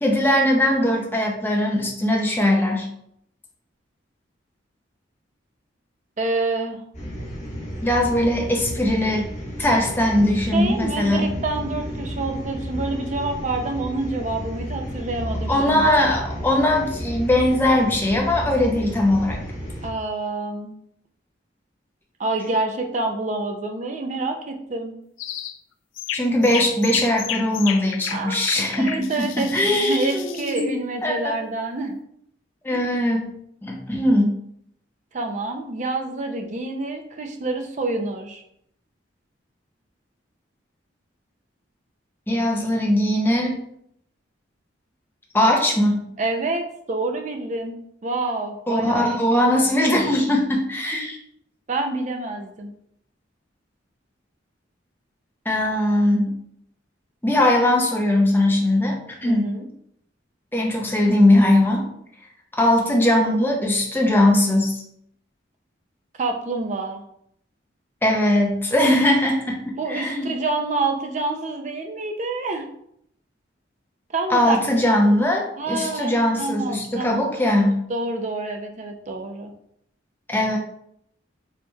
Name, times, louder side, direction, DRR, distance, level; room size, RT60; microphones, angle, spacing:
voice 1, 0.0-2.9 7.8-9.3 9.6-11.3 15.5-19.4 26.1-31.3 32.6-33.3 33.6-34.3 42.3-43.6 45.3-46.1 48.7-51.2 55.5-56.3 57.2-59.5 60.5-61.9 62.6-64.8 68.0-70.4 74.3-77.8 80.3-80.6, left 1 dB, 10° left, 0 dB, 0.5 m, -20 dB
voice 2, 6.2-6.8 10.5-15.9 19.8-20.8 22.2-24.9 28.1-28.4 28.7-31.9 32.7-33.0 35.1-38.4 46.2-47.8 48.0-49.8 51.7-52.7 59.2-59.7 66.2-67.0 69.8-72.7 74.1-74.6 75.6-77.3 77.9-79.5, right 2 dB, 40° right, 4 dB, 0.5 m, -27 dB
sound 1, 6.9-19.9, equal, 40° left, 1.4 m, -32 dB
sound 2, 25.2-25.6 26.0-30.7, left 10 dB, 90° left, 0.3 m, -32 dB
4.3 x 2.9 x 2.3 m, 0.72 s
head